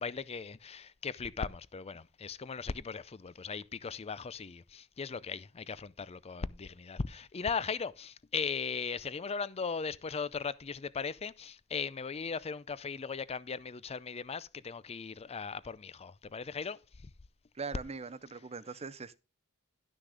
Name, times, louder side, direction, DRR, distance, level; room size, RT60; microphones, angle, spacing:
voice 1, 0.0-17.1, left 5 dB, 30° left, 0.5 m, -38 dB
voice 2, 17.5-19.2, right 4 dB, 30° right, 0.6 m, -41 dB
12.0 x 6.3 x 4.9 m
head